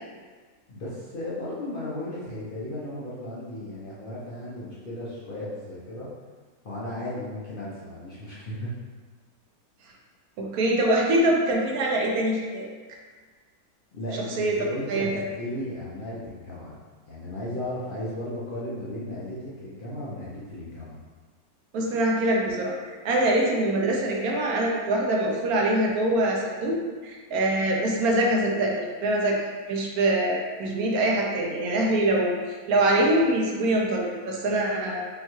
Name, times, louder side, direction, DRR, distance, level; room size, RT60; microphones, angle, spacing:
voice 1, 0.7-6.1 6.6-8.7 13.9-16.8 17.1-21.0, left 1 dB, 45° left, -8 dB, 0.8 m, -35 dB
voice 2, 10.4-12.7 14.4-15.1 21.7-26.8 27.0-32.3 32.7-35.0, right 1 dB, 80° right, -1 dB, 1.1 m, -24 dB
5.4 x 2.3 x 3.0 m, 1.4 s
omnidirectional pair, 1.6 m